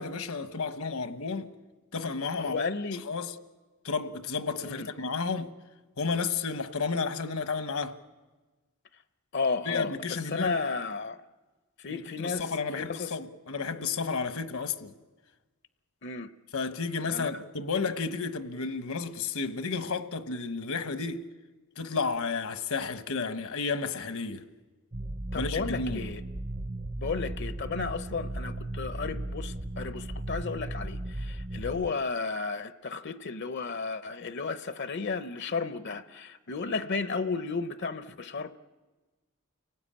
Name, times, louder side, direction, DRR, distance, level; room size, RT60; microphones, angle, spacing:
voice 1, 0.0-1.5 1.9-2.6 3.0-3.4 3.8-5.5 6.0-8.0 9.6-10.5 11.9-14.9 16.5-21.2 21.8-24.4 25.3-26.1, left 4 dB, 75° left, 1.2 m, -32 dB
voice 2, 2.4-3.0 4.6-4.9 9.3-11.2 11.8-13.1 14.3-14.4 16.0-16.3 17.1-17.3 25.3-26.2 27.0-38.6, left 4 dB, 55° left, 0.7 m, -33 dB
sound 1, 24.9-31.9, right 1 dB, 25° right, 0.7 m, -36 dB
30.0 x 18.0 x 8.8 m
head